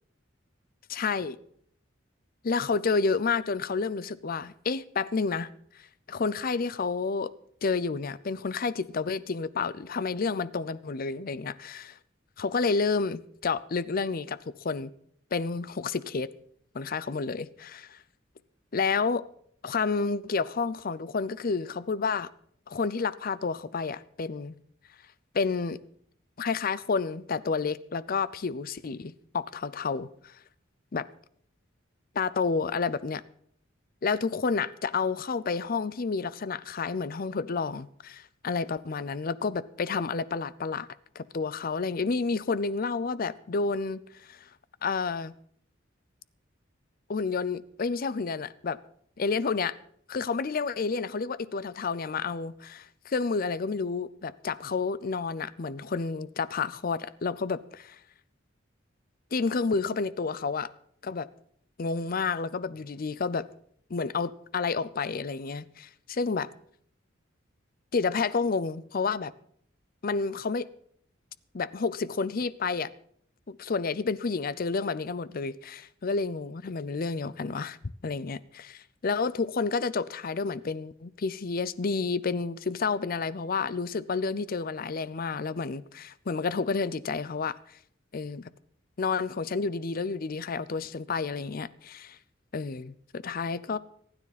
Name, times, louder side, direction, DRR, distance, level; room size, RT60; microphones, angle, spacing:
voice 1, 0.9-1.4 2.4-5.5 6.1-7.3 7.6-12.0 12.4-14.9 15.3-16.3 16.7-18.0 18.7-19.2 19.6-22.3 22.7-24.5 25.3-25.8 26.4-30.4 30.9-31.1 32.1-33.2 34.0-40.9 41.2-44.0 44.3-44.4 44.8-45.3 47.1-48.8 49.2-49.7 50.1-58.0 59.3-60.7 61.0-61.3 61.8-63.5 63.9-66.5 67.9-69.3 70.0-70.7 71.5-72.9 73.5-77.8 78.0-87.6 88.1-88.5 89.0-92.2 92.5-93.8, left 4 dB, 45° left, 0.5 m, -30 dB
25.5 x 9.7 x 4.2 m
head